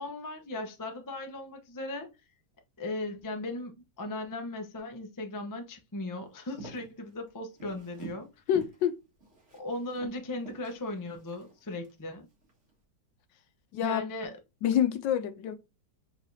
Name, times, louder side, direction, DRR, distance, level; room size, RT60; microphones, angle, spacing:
voice 1, 0.0-2.1 2.8-8.3 9.6-12.3 13.8-14.4, left 2 dB, 30° left, 0.3 m, -37 dB
Walk footsteps, 6.4-8.3 8.5-8.8 9.2-11.9 12.4-12.7, right 3 dB, 35° right, 1.9 m, -48 dB
voice 2, 8.5-9.0 13.7-14.0 14.6-15.6, left 9 dB, 75° left, 1.2 m, -27 dB
4.7 x 3.8 x 2.7 m
omnidirectional pair, 2.2 m